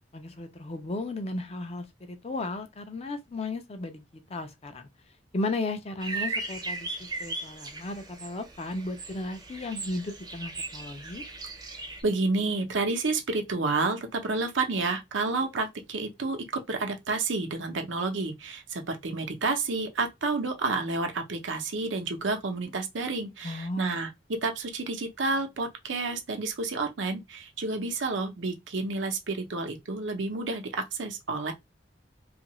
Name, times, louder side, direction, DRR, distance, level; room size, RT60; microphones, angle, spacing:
voice 1, 0.1-4.0 4.3-4.9 5.3-11.2 23.4-24.0, left 2 dB, 35° left, 0.4 m, -35 dB
sound 1, 6.0-12.0, right 3 dB, 20° right, 0.5 m, -37 dB
voice 2, 12.0-31.5, right 3 dB, 85° right, 0.7 m, -30 dB
2.7 x 2.4 x 3.0 m
head